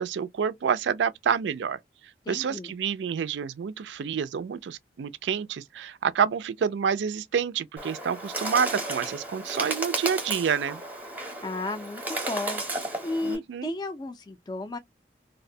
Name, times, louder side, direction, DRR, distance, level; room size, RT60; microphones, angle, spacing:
voice 1, 0.0-1.8 2.3-10.8 13.2-13.7, right 7 dB, 85° right, 0.3 m, -28 dB
voice 2, 2.3-2.8 11.4-12.6 13.0-14.8, left 2 dB, 25° left, 0.3 m, -33 dB
Bird, 7.8-13.4, right 2 dB, 10° right, 0.6 m, -33 dB
2.6 x 2.1 x 2.6 m
head